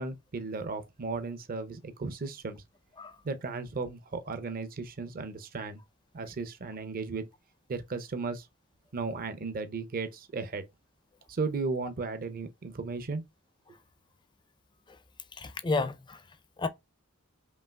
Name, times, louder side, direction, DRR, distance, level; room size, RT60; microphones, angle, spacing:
voice 1, 0.0-2.6 3.2-5.8 6.1-7.3 7.7-8.5 8.9-10.6 11.3-13.2, right 4 dB, 40° right, 0.5 m, -35 dB
voice 2, 15.3-16.7, left 3 dB, 20° left, 0.4 m, -33 dB
5.3 x 2.7 x 2.2 m
head